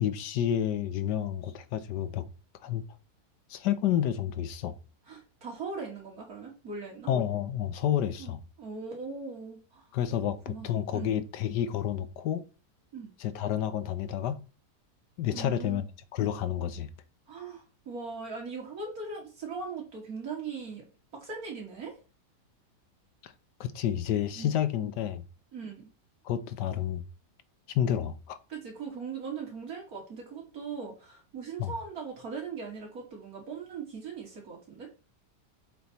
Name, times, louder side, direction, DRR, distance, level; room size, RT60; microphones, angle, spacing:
voice 1, 0.0-2.3 2.6-2.8 3.5-4.8 7.1-8.4 9.9-12.5 13.2-14.4 15.2-15.8 16.1-16.9 23.2-23.3 23.6-25.2 26.2-27.0 27.7-28.4 31.6-31.7, left 10 dB, 85° left, 1.3 m, -30 dB
voice 2, 5.1-7.1 8.2-9.9 10.2-11.1 12.9-13.1 15.3-15.8 17.3-20.8 21.1-22.0 24.3-24.5 25.5-25.9 28.5-34.9, right 5 dB, 60° right, 2.8 m, -40 dB
7.7 x 4.4 x 4.1 m
omnidirectional pair, 1.8 m